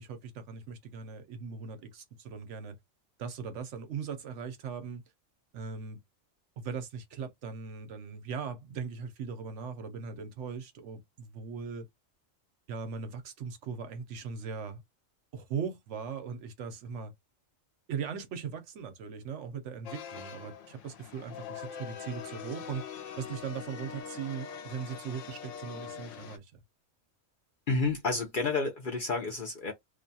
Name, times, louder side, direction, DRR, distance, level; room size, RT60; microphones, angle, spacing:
voice 1, 0.0-2.8 3.2-5.0 5.5-6.0 6.6-11.9 12.7-14.8 15.3-17.1 17.9-22.8 23.2-26.5, right 6 dB, 70° right, 0.9 m, -39 dB
sound 1, 19.8-26.4, left 7 dB, 70° left, 1.0 m, -43 dB
voice 2, 27.7-29.7, left 3 dB, 55° left, 0.6 m, -30 dB
2.4 x 2.2 x 2.6 m
omnidirectional pair, 1.3 m